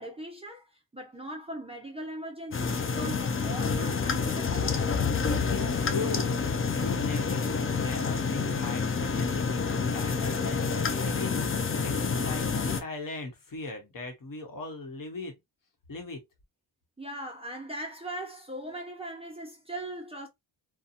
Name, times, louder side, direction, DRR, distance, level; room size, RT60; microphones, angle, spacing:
voice 1, 0.0-4.9 17.0-20.3, right 1 dB, 15° right, 0.6 m, -39 dB
sound 1, 2.5-12.8, left 5 dB, 30° left, 0.5 m, -28 dB
voice 2, 5.2-15.3 15.9-16.2, left 3 dB, 50° left, 1.1 m, -38 dB
2.8 x 2.3 x 2.5 m
cardioid pair, 105°, 43 cm